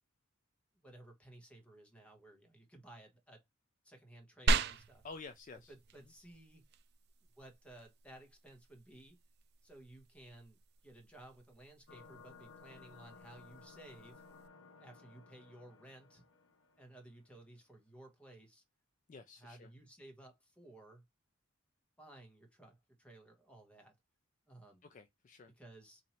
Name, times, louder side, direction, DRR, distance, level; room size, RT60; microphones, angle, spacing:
voice 1, 0.8-3.4 3.8-5.0 5.7-6.6 7.4-9.2 9.6-14.2 14.8-16.2 16.8-18.6 19.4-21.0 22.0-23.9 24.5-24.8 25.6-26.0, right 1 dB, 5° left, 1.0 m, -57 dB
sound 1, 4.5-14.5, right 3 dB, 50° right, 0.4 m, -41 dB
voice 2, 5.0-5.7 19.1-19.7 24.8-25.5, left 4 dB, 40° left, 0.3 m, -51 dB
sound 2, 11.9-17.1, left 4 dB, 65° left, 0.7 m, -58 dB
2.9 x 2.7 x 4.2 m
head